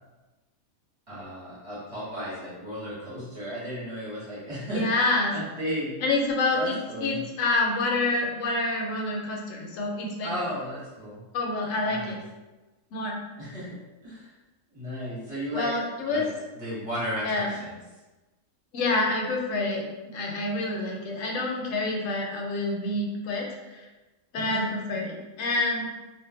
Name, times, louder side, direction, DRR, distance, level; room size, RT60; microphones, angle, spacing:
voice 1, 1.1-6.1 6.5-7.2 10.2-11.2 11.8-12.2 13.4-13.8 14.0-14.3 14.7-16.3 16.5-17.8 24.3-24.7, equal, 25° right, -10 dB, 1.2 m, -34 dB
voice 2, 4.7-5.3 6.0-6.7 7.0-10.4 11.3-12.2 12.9-13.2 15.5-16.3 17.2-17.5 18.7-23.9 24.3-25.9, left 2 dB, 70° left, 0 dB, 0.9 m, -27 dB
2.6 x 2.5 x 3.6 m, 1.1 s
omnidirectional pair, 1.5 m